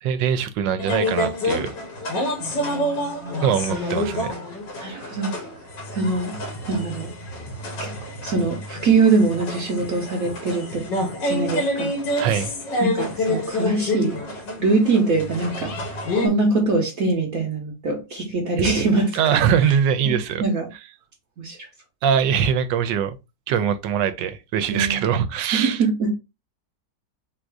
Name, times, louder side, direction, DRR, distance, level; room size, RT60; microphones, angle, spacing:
voice 1, 0.0-1.7 3.4-4.3 12.2-12.5 18.6-18.7 19.2-20.4 22.0-23.2 23.5-25.8, right 8 dB, 85° right, 1.3 m, -22 dB
sound 1, 0.8-16.3, left 1 dB, 75° left, 1.9 m, -28 dB
voice 2, 2.4-3.6 4.8-5.3 5.9-6.3 6.7-7.1 7.8-7.9 8.2-10.8 11.3-11.9 12.3-12.4 12.8-14.1 14.6-15.7 16.1-19.4 20.0-20.1 20.4-20.6 21.4-21.6 24.7-25.1 25.5-26.2, right 3 dB, 60° right, 1.1 m, -23 dB
3.8 x 2.6 x 4.5 m
omnidirectional pair, 1.9 m